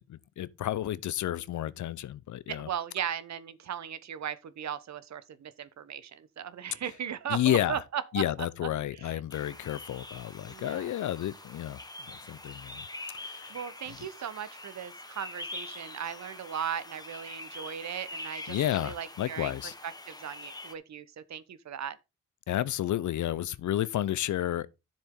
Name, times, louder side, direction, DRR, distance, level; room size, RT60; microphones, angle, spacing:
voice 1, 0.0-2.7 7.3-7.8 8.1-11.8 12.1-12.8 13.1-13.6 13.9-14.0 18.5-19.7 22.5-24.7, left 12 dB, 80° left, 0.7 m, -31 dB
voice 2, 2.5-8.2 9.0-9.2 10.5-10.9 13.5-19.6 19.8-22.0, right 9 dB, 65° right, 1.1 m, -37 dB
sound 1, 9.3-20.7, left 2 dB, 15° left, 1.3 m, -44 dB
10.0 x 7.3 x 3.8 m
cardioid pair, 75°, 29 cm